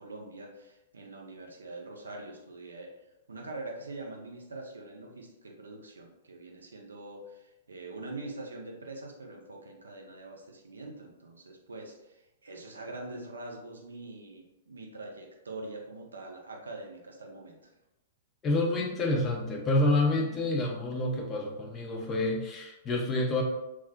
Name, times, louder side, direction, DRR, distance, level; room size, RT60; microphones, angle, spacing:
voice 1, 0.0-2.9 3.3-17.7, right 2 dB, 70° right, 1 dB, 0.4 m, -44 dB
voice 2, 18.4-23.4, left 2 dB, 20° left, 0 dB, 0.5 m, -28 dB
2.4 x 2.0 x 2.5 m, 0.94 s
figure-of-eight pair, 105°, 0 cm